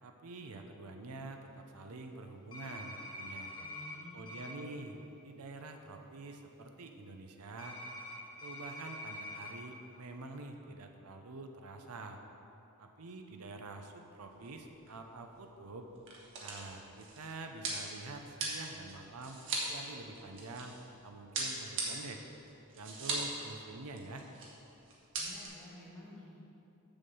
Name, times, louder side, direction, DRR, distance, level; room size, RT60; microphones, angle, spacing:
voice 1, 0.0-3.5 4.1-5.0 5.2-7.8 8.4-12.2 12.8-15.9 16.4-19.4 19.7-22.2 22.7-24.2, right 3 dB, 75° right, 4 dB, 0.7 m, -47 dB
sound 1, 2.5-4.0 4.3-4.5 7.6-9.5, left 1 dB, 20° left, 1.1 m, -45 dB
voice 2, 3.6-4.3 25.2-26.4, left 1 dB, 5° left, -7 dB, 1.7 m, -52 dB
sound 2, 14.3-14.6 14.9-15.0 15.8-20.9 21.3-23.4 23.7-23.8 24.0-24.5 24.9-25.5, right 3 dB, 60° right, 1.5 m, -39 dB
7.0 x 5.5 x 6.9 m, 3.0 s
head